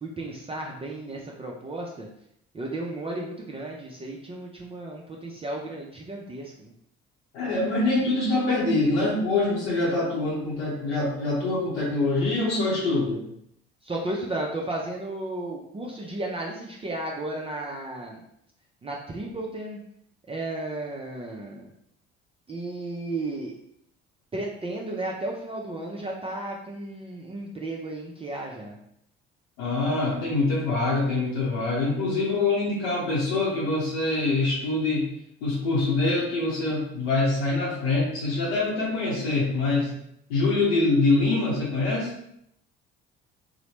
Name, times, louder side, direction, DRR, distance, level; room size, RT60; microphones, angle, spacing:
voice 1, 0.0-2.1 2.5-6.7 13.8-18.2 18.8-19.8 20.3-21.7 22.5-23.5 24.3-28.8, right 2 dB, 20° right, -2 dB, 0.4 m, -34 dB
voice 2, 7.3-13.2 29.6-35.1 35.4-39.9 40.3-42.1, left 2 dB, 90° left, -6 dB, 0.7 m, -24 dB
2.9 x 2.1 x 3.1 m, 0.74 s
hypercardioid pair, 60°, 30 cm